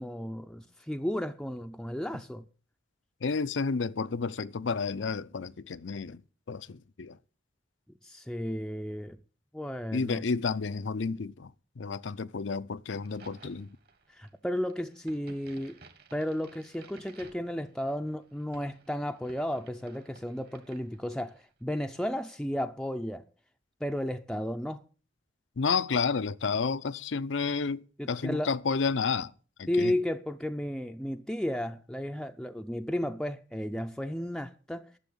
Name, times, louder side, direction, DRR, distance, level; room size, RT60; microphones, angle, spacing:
voice 1, 0.0-2.4 8.0-9.2 9.5-10.2 14.1-15.8 16.1-23.2 23.8-24.8 28.0-28.5 29.7-34.8, left 1 dB, 5° left, 0.5 m, -33 dB
voice 2, 3.2-6.2 6.5-7.2 9.9-13.8 25.6-29.3 29.6-29.9, left 5 dB, 75° left, 0.6 m, -31 dB
Crack, 12.9-21.5, right 3 dB, 55° right, 1.8 m, -56 dB
12.0 x 7.1 x 8.4 m
head